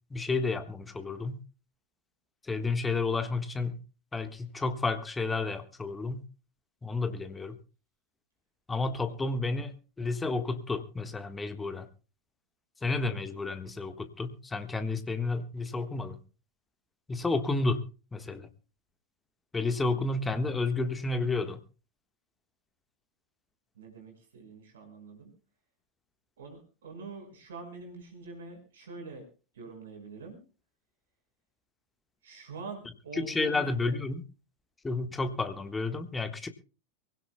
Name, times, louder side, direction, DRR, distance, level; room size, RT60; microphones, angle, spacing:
voice 1, 0.1-1.4 2.4-3.8 4.1-6.2 6.8-7.6 8.7-11.9 12.8-16.2 17.1-17.8 18.1-18.5 19.5-21.6 33.1-34.2 34.8-36.5, left 3 dB, 10° left, 1.4 m, -31 dB
voice 2, 13.0-13.4 19.9-20.4 23.8-25.3 26.4-29.2 29.5-30.4 32.2-33.9, right 3 dB, 60° right, 5.6 m, -45 dB
23.5 x 16.5 x 2.2 m
figure-of-eight pair, 90°, 0 cm